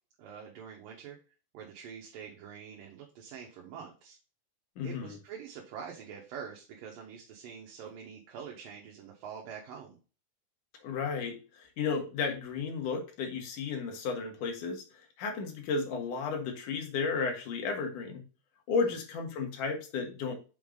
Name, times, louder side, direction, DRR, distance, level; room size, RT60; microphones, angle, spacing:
voice 1, 0.2-1.2 1.5-4.2 4.8-10.0 18.8-19.0, right 7 dB, 70° right, 0 dB, 2.8 m, -45 dB
voice 2, 4.8-5.2 10.8-18.2 18.7-20.3, left 5 dB, 65° left, 3 dB, 2.8 m, -33 dB
6.2 x 5.5 x 3.8 m, 0.34 s
omnidirectional pair, 4.3 m